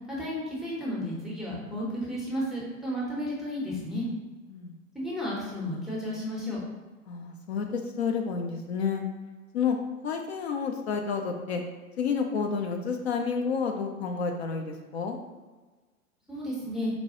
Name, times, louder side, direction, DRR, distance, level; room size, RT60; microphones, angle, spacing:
voice 1, 0.1-4.1 4.9-6.6 16.3-16.9, equal, ahead, -6 dB, 0.6 m, -33 dB
voice 2, 7.1-9.0 9.5-9.8 10.0-11.6 12.0-15.2, left 5 dB, 50° left, 3 dB, 0.4 m, -30 dB
4.1 x 2.2 x 2.7 m, 1.3 s
figure-of-eight pair, 95°, 43 cm